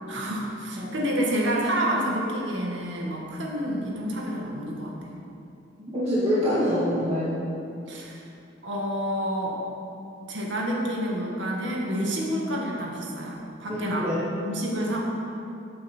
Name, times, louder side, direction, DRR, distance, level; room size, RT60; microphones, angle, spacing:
voice 1, 0.1-5.2 7.9-8.3 8.6-9.6 10.3-14.0 14.4-15.0, equal, 85° right, -2 dB, 2.0 m, -29 dB
voice 2, 5.8-7.4 13.7-14.3, equal, 35° right, -10 dB, 2.3 m, -26 dB
15.0 x 8.6 x 4.5 m, 2.7 s
head